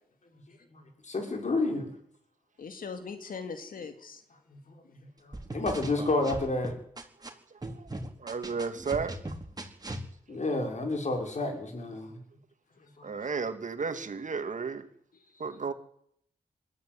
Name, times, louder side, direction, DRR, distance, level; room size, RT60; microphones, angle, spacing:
voice 1, 0.7-1.9 4.5-4.6 5.2-6.8 10.3-12.2 13.0-13.1, left 2 dB, 55° left, 5.9 m, -30 dB
voice 2, 2.6-4.2 15.1-15.6, left 5 dB, 75° left, 2.5 m, -41 dB
sound 1, 5.3-7.3 7.6-10.0, right 1 dB, 25° right, 4.2 m, -38 dB
voice 3, 8.2-9.3 13.0-14.9 15.4-15.7, right 5 dB, 60° right, 2.4 m, -33 dB
21.0 x 14.0 x 9.6 m
cardioid pair, 50°, 15 cm